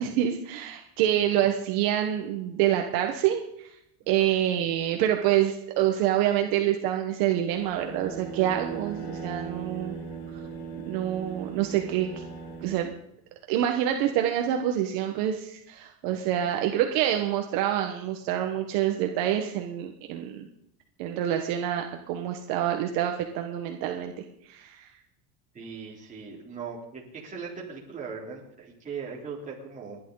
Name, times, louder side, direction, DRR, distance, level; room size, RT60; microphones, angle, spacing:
voice 1, 0.0-3.7 4.1-10.0 10.9-12.2 12.6-12.9 13.5-20.4 21.0-24.9, right 11 dB, 50° right, 4 dB, 1.4 m, -27 dB
voice 2, 1.0-1.4 4.2-4.4 16.0-16.5 25.5-30.0, right 5 dB, 15° right, -3 dB, 3.6 m, -40 dB
sound 1, 7.5-12.8, right 5 dB, 55° left, 7.4 m, -38 dB
30.0 x 11.0 x 4.0 m, 0.78 s
cardioid pair, 180°, 46 cm